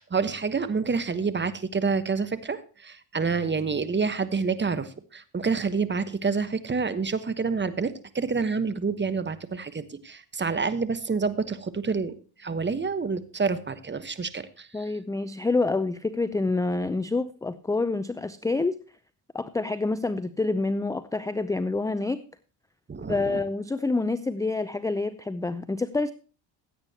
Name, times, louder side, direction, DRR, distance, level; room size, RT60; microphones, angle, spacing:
voice 1, 0.0-14.9 22.9-23.4, right 5 dB, 20° right, 13 dB, 1.2 m, -28 dB
voice 2, 14.7-18.8 19.3-22.2 23.1-26.1, left 3 dB, 5° left, 13 dB, 0.5 m, -27 dB
16.0 x 8.8 x 2.9 m, 0.36 s
supercardioid pair, 80°, 49 cm